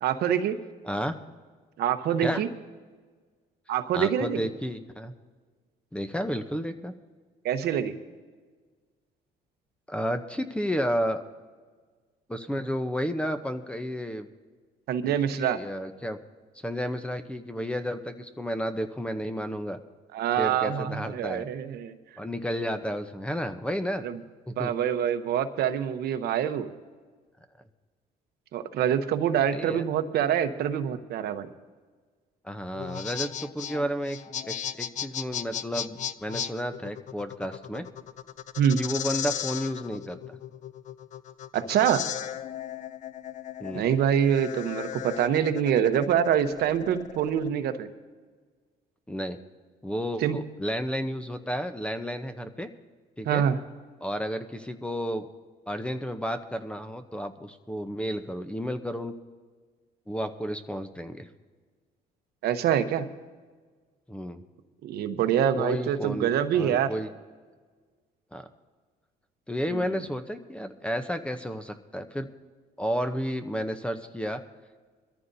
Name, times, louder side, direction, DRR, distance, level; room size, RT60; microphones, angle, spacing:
voice 1, 0.0-0.6 1.8-2.5 3.7-4.4 7.4-8.0 14.9-15.6 20.1-21.9 24.0-24.2 24.6-26.7 28.5-31.5 38.6-38.8 41.5-42.0 43.7-47.9 50.2-50.4 53.3-53.6 62.4-63.0 64.8-66.9 69.7-69.8, right 9 dB, 70° right, 9 dB, 0.9 m, -25 dB
voice 2, 0.8-1.2 2.2-2.4 3.9-5.1 5.9-6.9 9.9-11.2 12.3-14.3 15.1-16.2 16.6-19.8 20.4-21.5 22.2-24.0 24.5-24.7 29.5-29.9 32.4-34.2 34.4-37.9 38.7-40.4 43.6-43.9 49.1-49.4 49.8-52.7 53.2-53.4 54.0-55.3 55.7-59.1 60.1-61.3 64.1-64.4 65.6-67.1 68.3-68.5 69.5-72.3 72.8-74.4, equal, 5° left, 8 dB, 0.7 m, -32 dB
sound 1, 32.7-47.5, left 9 dB, 45° left, 0.4 m, -36 dB
22.5 x 14.0 x 2.7 m, 1.5 s
cardioid pair, 110°, 17 cm